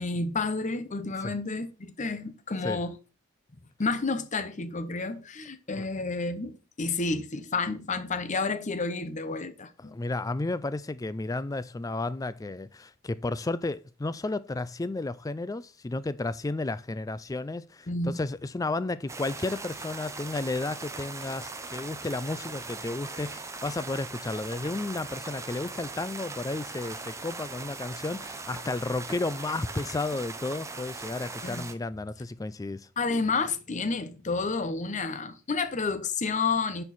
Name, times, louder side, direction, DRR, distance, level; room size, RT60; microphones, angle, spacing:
voice 1, 0.0-3.0 3.8-10.0 17.9-18.2 31.4-31.6 33.0-36.8, left 3 dB, 35° left, 0.8 m, -30 dB
voice 2, 9.8-32.9, left 2 dB, 15° left, 0.3 m, -33 dB
sound 1, 19.1-31.7, right 3 dB, 15° right, 0.7 m, -40 dB
10.5 x 4.5 x 4.1 m
head